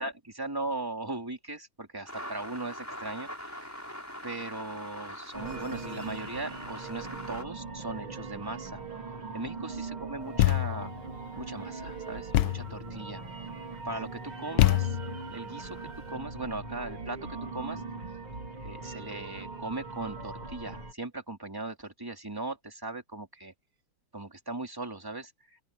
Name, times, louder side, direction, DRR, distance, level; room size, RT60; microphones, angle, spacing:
voice 1, 0.0-3.7 4.2-8.8 9.3-10.9 11.4-13.2 13.8-15.0 15.3-17.8 18.6-23.5 24.1-25.6, right 2 dB, 10° right, 2.9 m, -38 dB
sound 1, 2.1-7.4, equal, 5° left, 5.3 m, -42 dB
sound 2, 5.3-20.9, right 4 dB, 70° right, 5.3 m, -41 dB
Thump thud, 10.4-10.9 12.3-12.8 14.6-15.3, left 17 dB, 75° left, 1.1 m, -24 dB
open air
omnidirectional pair, 2.4 m